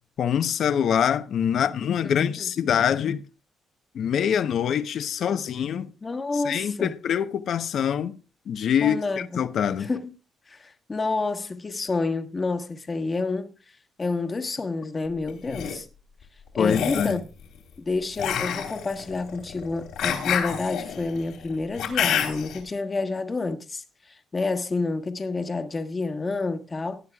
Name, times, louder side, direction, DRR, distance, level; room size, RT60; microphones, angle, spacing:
voice 1, 0.2-3.3 3.9-5.9 6.3-8.2 8.5-9.9 16.6-17.2, left 8 dB, 65° left, 0.9 m, -25 dB
voice 2, 2.0-2.5 6.0-6.9 8.8-9.4 9.8-10.1 10.5-13.5 14.0-15.9 16.5-17.2 17.8-27.0, left 3 dB, 30° left, 1.3 m, -29 dB
sound 1, 15.3-15.8 16.6-17.2 18.2-22.6, left 8 dB, 85° left, 3.3 m, -28 dB
18.0 x 9.3 x 2.4 m
cardioid pair, 90°, 0 cm